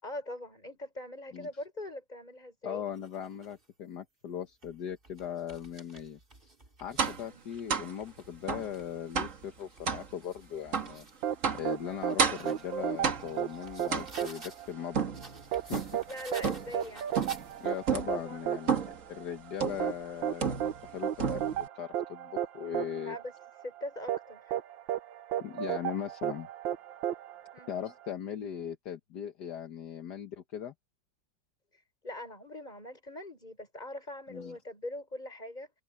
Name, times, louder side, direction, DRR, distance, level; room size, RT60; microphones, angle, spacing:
voice 1, 0.0-2.8 7.2-7.4 16.1-17.2 18.1-18.9 23.0-23.3 23.6-24.6 27.5-27.7 31.7-35.7, left 1 dB, 20° left, 6.7 m, -42 dB
voice 2, 2.6-6.2 6.8-11.1 11.5-15.0 15.5-15.9 17.6-20.6 20.8-23.2 25.4-26.5 27.7-30.7 34.3-34.6, left 9 dB, 65° left, 1.7 m, -39 dB
sound 1, 2.9-3.7 4.4-7.3 7.8-11.2 11.7-14.7 15.1-17.9, right 2 dB, 25° right, 3.6 m, -53 dB
sound 2, 7.0-7.3 7.7-7.9 8.5-8.7 9.2-9.4 9.9-10.1 10.7-11.0 11.4-11.7 12.2-12.6 13.0-13.4 13.9-14.4 14.9-16.0 16.4-16.8 17.2-17.5 17.9-18.2 18.7-19.0 19.6-19.9 20.4-20.9 21.2-21.7, right 6 dB, 45° right, 1.9 m, -31 dB
sound 3, 11.2-28.1, right 11 dB, 85° right, 1.7 m, -35 dB
omnidirectional pair, 2.0 m